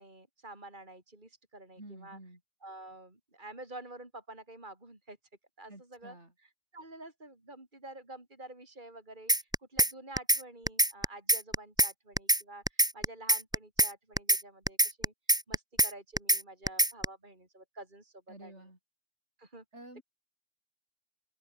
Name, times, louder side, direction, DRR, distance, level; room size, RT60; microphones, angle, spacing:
voice 1, 0.0-2.2 2.6-5.2 5.6-6.1 6.7-15.1 15.5-18.5 19.4-19.6, right 2 dB, 40° right, 4.8 m, -49 dB
voice 2, 1.8-2.4 5.7-6.3 18.3-18.8 19.7-20.0, right 1 dB, 60° right, 6.9 m, -50 dB
sound 1, 9.3-9.9 10.2-10.4 10.7-11.9 12.2-12.4 12.7-13.9 14.2-14.4 14.7-15.9 16.2-16.4 16.7-17.1, right 1 dB, 5° right, 0.8 m, -24 dB
open air
omnidirectional pair, 1.3 m